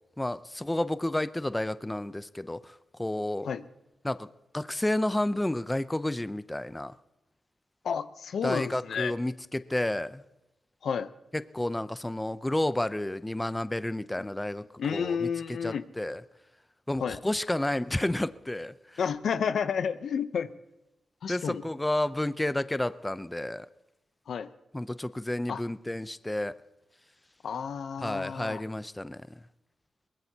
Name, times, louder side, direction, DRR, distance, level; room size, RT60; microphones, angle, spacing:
voice 1, 0.2-3.5 4.0-4.3 4.5-6.9 8.4-10.2 11.3-15.3 15.6-16.2 16.9-19.0 21.3-23.7 24.7-26.5 28.0-29.3, left 1 dB, 15° left, 14 dB, 0.6 m, -31 dB
voice 2, 7.8-9.1 10.8-11.1 14.8-15.8 17.0-17.2 19.0-20.5 21.2-21.6 24.3-24.5 25.5-25.6 27.4-28.6, left 7 dB, 75° left, 12 dB, 0.7 m, -31 dB
22.5 x 20.0 x 2.9 m, 0.94 s
cardioid pair, 70°, 0 cm